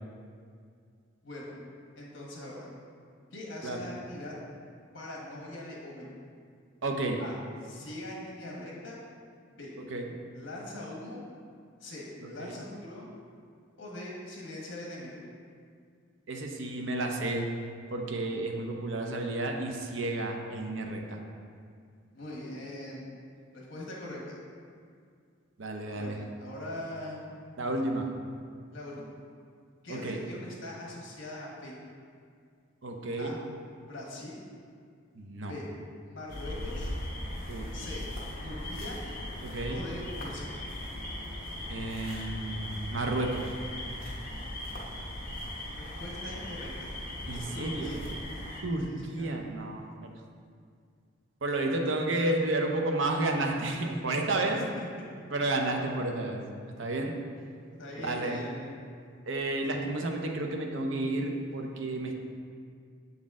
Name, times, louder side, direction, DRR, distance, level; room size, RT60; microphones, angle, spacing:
voice 1, 1.2-1.6 1.9-2.7 3.3-4.3 4.9-6.1 7.2-7.4 7.6-9.0 9.6-9.7 10.3-11.2 11.8-13.1 13.8-15.2 22.1-23.0 23.5-24.4 25.9-27.2 28.7-29.0 29.8-31.7 33.2-33.4 33.8-34.4 35.4-35.7 36.0-36.9 37.7-38.0 38.4-39.0 39.7-40.5 45.8-46.9 47.3-48.0 48.9-49.3 54.8-54.9 57.6-58.7, left 1 dB, 65° left, -3 dB, 1.3 m, -42 dB
voice 2, 6.8-7.2 9.9-10.1 12.4-12.5 16.3-17.5 17.9-21.2 25.6-26.2 27.6-28.1 29.9-30.2 32.8-33.3 35.1-35.5 37.5-37.7 39.4-39.8 41.7-43.5 47.3-47.9 48.6-50.1 51.4-54.6 55.3-56.4 56.8-57.2 58.0-58.4 59.3-62.1, right 2 dB, 70° right, 2 dB, 0.6 m, -31 dB
sound 1, 36.3-48.6, left 1 dB, 45° left, 1.0 m, -38 dB
7.3 x 4.0 x 3.7 m, 2.2 s
head